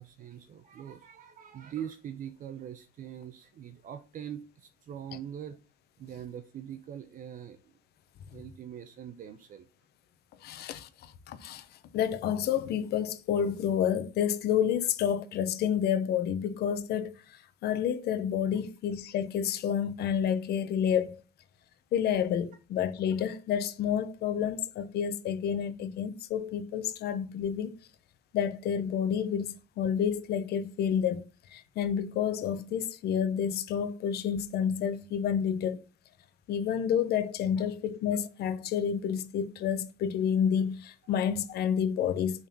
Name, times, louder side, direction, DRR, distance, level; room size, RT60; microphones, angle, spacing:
voice 1, 0.0-5.6 6.0-7.7 8.3-9.7 37.6-37.7, right 9 dB, 55° right, 0.8 m, -43 dB
voice 2, 10.4-11.6 11.9-17.1 17.6-21.2 21.9-27.7 28.3-31.2 31.5-35.8 36.5-42.5, left 8 dB, 70° left, 1.0 m, -29 dB
7.2 x 4.2 x 6.0 m
cardioid pair, 110°, 17 cm